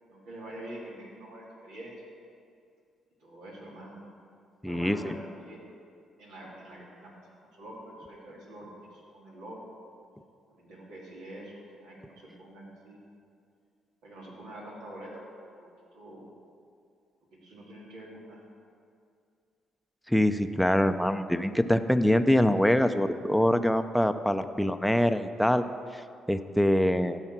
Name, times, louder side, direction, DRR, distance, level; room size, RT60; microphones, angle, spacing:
voice 1, 0.1-2.0 3.2-4.0 4.6-5.6 6.2-7.3 7.6-9.8 10.5-13.0 14.0-15.7 15.9-16.3 17.3-18.4, right 1 dB, 85° right, -4 dB, 3.0 m, -45 dB
voice 2, 4.6-5.2 20.1-25.7 25.9-26.0 26.3-27.2, equal, ahead, 9 dB, 0.6 m, -24 dB
15.5 x 5.8 x 6.0 m, 2.4 s
supercardioid pair, 65°, 0 cm